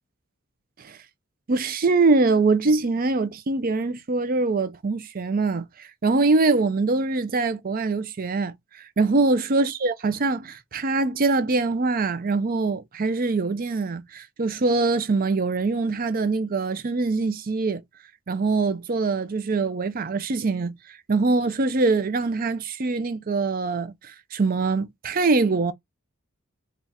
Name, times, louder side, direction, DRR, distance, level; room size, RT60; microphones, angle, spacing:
voice 1, 1.5-8.5 9.0-17.8 18.3-20.7 21.1-25.7, right 3 dB, 40° right, 0.5 m, -23 dB
3.6 x 2.4 x 4.1 m
head